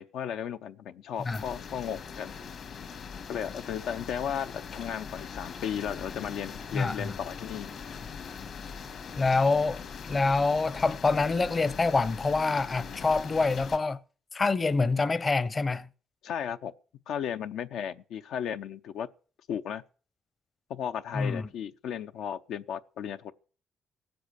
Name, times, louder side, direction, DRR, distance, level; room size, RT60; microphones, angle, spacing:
voice 1, 0.0-2.3 3.3-7.7 16.2-16.7 17.1-19.1 19.5-19.8 20.7-23.3, left 8 dB, 80° left, 0.7 m, -35 dB
sound 1, 1.2-13.8, left 6 dB, 65° left, 2.1 m, -41 dB
voice 2, 6.7-7.2 9.1-9.8 10.1-14.0 14.3-15.9 21.1-21.5, left 3 dB, 30° left, 0.7 m, -26 dB
17.5 x 7.9 x 6.5 m
cardioid pair, 90°, 0 cm